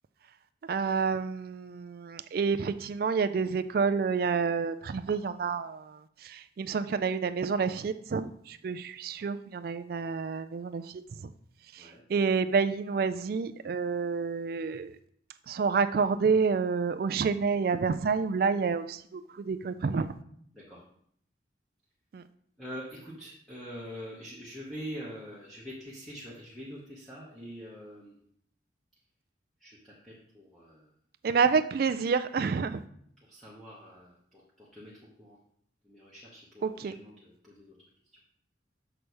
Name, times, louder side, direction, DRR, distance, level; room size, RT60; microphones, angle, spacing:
voice 1, 0.7-11.0 11.7-14.9 15.5-20.1 22.1-22.2 31.2-32.8 36.6-36.9, right 5 dB, 55° right, 11 dB, 0.3 m, -29 dB
voice 2, 22.6-28.2 29.6-30.9 33.3-34.9 35.2-35.4 35.8-37.7, equal, ahead, -8 dB, 1.1 m, -44 dB
6.8 x 3.3 x 6.1 m, 0.66 s
head